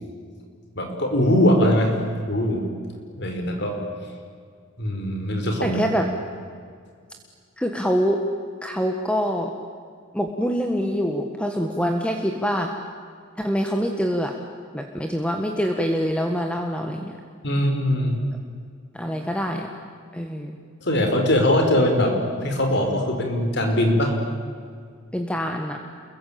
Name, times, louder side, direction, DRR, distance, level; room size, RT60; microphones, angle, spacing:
voice 1, 0.7-2.0 2.3-2.6 3.2-3.8 4.8-5.8 17.4-18.2 20.8-24.2, left 1 dB, 55° left, 3 dB, 5.1 m, -21 dB
voice 2, 5.6-6.1 7.6-8.2 8.6-9.5 10.1-12.7 13.4-14.4 14.7-17.2 18.9-19.7 20.1-20.6 25.1-25.8, equal, 5° left, 3 dB, 1.6 m, -25 dB
28.5 x 22.5 x 8.8 m, 2.1 s
head